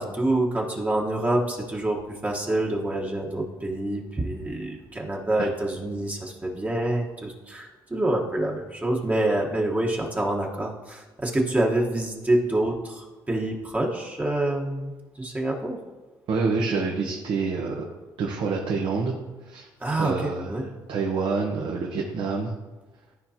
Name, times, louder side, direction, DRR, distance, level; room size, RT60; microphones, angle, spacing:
voice 1, 0.0-15.8 19.8-20.7, right 1 dB, 15° right, -1 dB, 1.2 m, -27 dB
voice 2, 16.3-19.1 19.5-19.7 20.0-20.5 20.9-22.5, right 4 dB, 70° right, -1 dB, 1.1 m, -27 dB
13.0 x 4.5 x 2.8 m, 1.2 s
cardioid pair, 85°, 9 cm